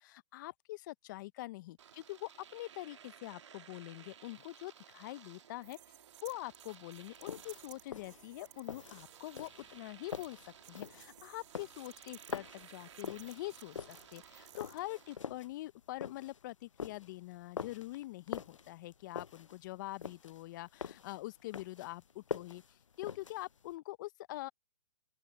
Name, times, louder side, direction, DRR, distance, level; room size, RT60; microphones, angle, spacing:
voice 1, 0.0-5.8 6.2-24.5, left 18 dB, 40° left, 0.9 m, -44 dB
Domestic sounds home sounds, 1.8-15.2, right 8 dB, 70° right, 2.0 m, -58 dB
sound 1, 5.6-9.5 10.0-10.3 10.6-14.8, right 18 dB, 25° right, 3.2 m, -58 dB
sound 2, 7.1-23.7, left 6 dB, 85° left, 0.7 m, -45 dB
open air
hypercardioid pair, 135°, 16 cm